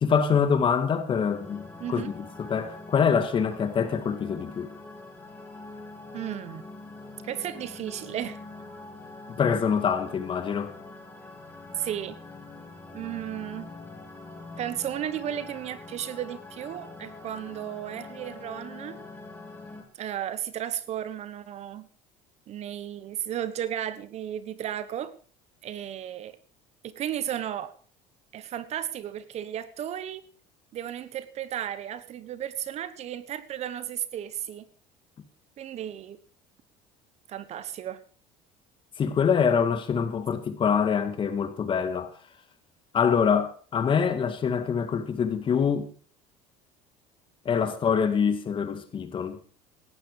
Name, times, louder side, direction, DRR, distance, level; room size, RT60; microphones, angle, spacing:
voice 1, 0.0-1.6 1.9-4.7 9.3-10.7 39.0-42.1 42.9-45.9 47.4-49.4, left 6 dB, 35° left, 2.1 m, -25 dB
sound 1, 0.9-19.8, left 2 dB, 10° left, 3.6 m, -44 dB
voice 2, 1.8-2.1 6.1-6.6 7.2-8.4 11.8-12.2 12.9-13.7 14.6-19.0 19.9-21.9 22.5-25.1 25.6-26.4 26.8-27.7 28.3-30.2 30.7-34.7 35.6-36.2 37.3-38.0, right 10 dB, 50° right, 1.3 m, -34 dB
17.0 x 12.5 x 4.9 m
cardioid pair, 120°, 15 cm